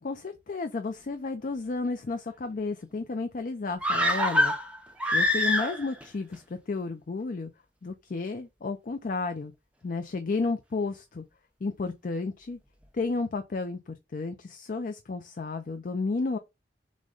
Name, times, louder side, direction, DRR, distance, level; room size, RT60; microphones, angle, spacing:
voice 1, 0.0-4.5 5.1-7.5 7.8-9.5 9.8-11.2 11.6-12.6 12.9-16.4, left 3 dB, 50° left, 0.4 m, -32 dB
sound 1, 3.8-6.0 6.3-6.4, left 1 dB, 5° right, 0.6 m, -25 dB
6.3 x 2.2 x 3.8 m
head